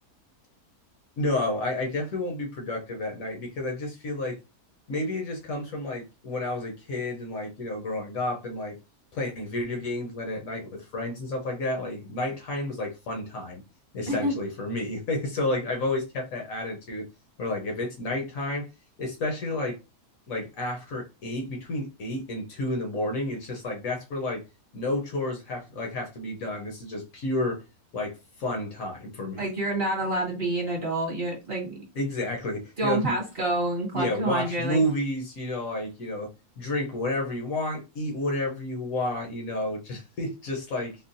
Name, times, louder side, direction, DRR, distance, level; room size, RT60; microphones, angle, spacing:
voice 1, 1.2-4.4 4.9-8.8 9.1-13.6 13.9-17.1 17.4-18.7 19.0-19.8 20.3-24.4 24.7-27.6 27.9-29.5 31.9-33.2 33.9-36.3 36.6-41.0, left 1 dB, 65° left, 1.1 m, -30 dB
voice 2, 29.4-31.8 32.8-34.8, right 1 dB, 45° right, 1.1 m, -28 dB
3.8 x 2.2 x 2.5 m
omnidirectional pair, 1.6 m